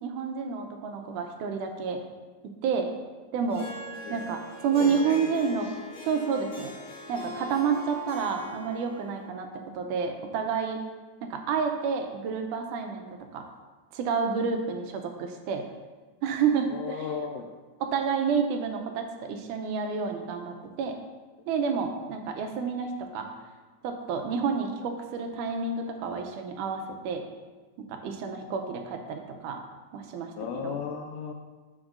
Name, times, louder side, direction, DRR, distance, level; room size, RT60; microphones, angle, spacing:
voice 1, 0.0-2.0 2.6-2.9 3.3-3.7 4.1-5.7 6.0-6.7 7.1-9.5 9.7-10.8 11.2-13.1 13.3-13.5 13.9-15.7 16.2-16.7 17.8-21.0 21.5-23.3 23.8-27.2 27.9-29.6 29.9-30.8, right 6 dB, 80° right, 5 dB, 2.2 m, -29 dB
Harp, 3.5-9.3, left 1 dB, 20° left, 2.4 m, -41 dB
voice 2, 4.7-5.2 16.7-17.5 30.4-31.3, left 6 dB, 85° left, 2 dB, 2.1 m, -35 dB
12.0 x 5.3 x 2.5 m, 1.3 s
omnidirectional pair, 3.7 m